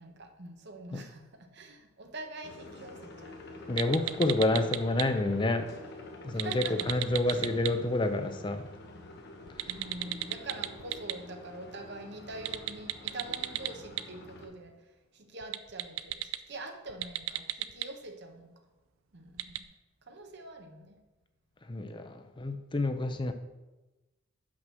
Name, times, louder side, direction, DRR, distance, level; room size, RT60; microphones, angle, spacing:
voice 1, 0.0-3.4 6.3-6.9 7.3-7.5 9.7-14.7 15.1-18.5 19.1-19.6 20.1-21.0, right 2 dB, 55° right, 5 dB, 1.0 m, -45 dB
sound 1, 2.4-14.5, left 2 dB, 50° left, 1.1 m, -47 dB
voice 2, 3.7-5.6 6.2-8.6 9.6-9.7 21.7-23.3, left 2 dB, 20° left, 8 dB, 0.5 m, -29 dB
sound 2, 3.8-5.0 6.3-7.7 9.5-11.1 12.3-14.0 15.4-16.4 16.9-17.8 19.4-19.6, right 15 dB, 75° right, 0.4 m, -32 dB
6.1 x 6.0 x 6.2 m, 1.1 s
head